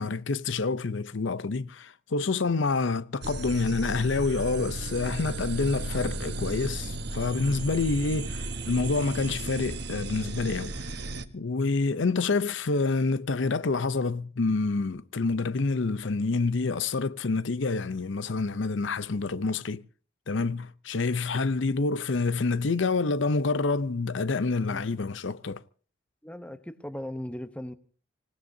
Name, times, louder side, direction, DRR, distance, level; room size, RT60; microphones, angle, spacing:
voice 1, 0.0-10.8 11.3-19.8 20.3-25.6, left 3 dB, 70° left, 0.6 m, -27 dB
sound 1, 3.2-11.2, right 2 dB, 55° right, 1.2 m, -35 dB
voice 2, 26.2-27.7, left 1 dB, 5° left, 0.9 m, -38 dB
26.0 x 17.5 x 2.7 m
head